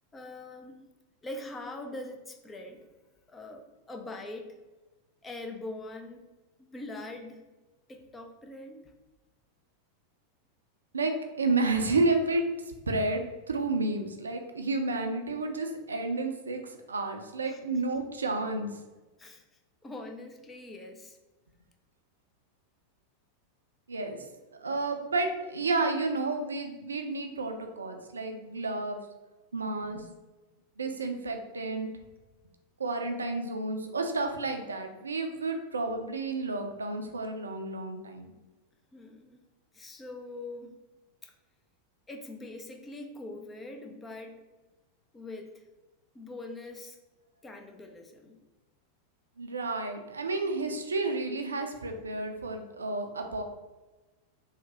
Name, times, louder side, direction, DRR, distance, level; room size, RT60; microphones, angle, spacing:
voice 1, 0.1-0.9 1.2-2.9 3.3-4.6 5.2-6.2 6.6-7.4 7.9-8.9 17.5-17.6 19.2-19.4 19.8-21.2 38.9-39.4 39.7-40.8 41.2-41.3 42.1-44.4 45.1-45.6 46.1-47.0 47.4-48.4, left 2 dB, 15° left, 3 dB, 0.4 m, -43 dB
voice 2, 10.9-12.4 12.9-16.6 16.9-18.7 23.9-24.2 24.5-29.0 29.5-30.1 30.8-31.9 32.8-38.3 49.4-53.4, right 3 dB, 75° right, 5 dB, 0.3 m, -31 dB
3.1 x 2.1 x 2.8 m, 1.2 s
figure-of-eight pair, 90°, 0 cm